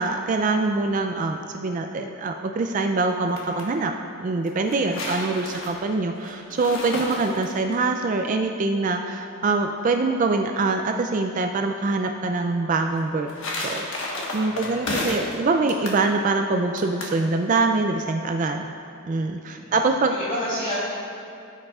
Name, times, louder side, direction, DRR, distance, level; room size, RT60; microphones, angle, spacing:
voice 1, 0.0-3.9 4.2-13.3 13.5-18.7 19.0-20.1, right 3 dB, 35° right, 4 dB, 0.3 m, -24 dB
sound 1, 3.1-3.7 4.5-7.8 12.9-15.4 15.7-16.0 16.8-17.2, left 2 dB, 60° left, 1.3 m, -32 dB
voice 2, 4.8-5.1 14.4-15.2 19.5-19.7 20.1-20.7, equal, 35° left, -11 dB, 2.0 m, -32 dB
14.0 x 7.7 x 2.4 m, 2.6 s
head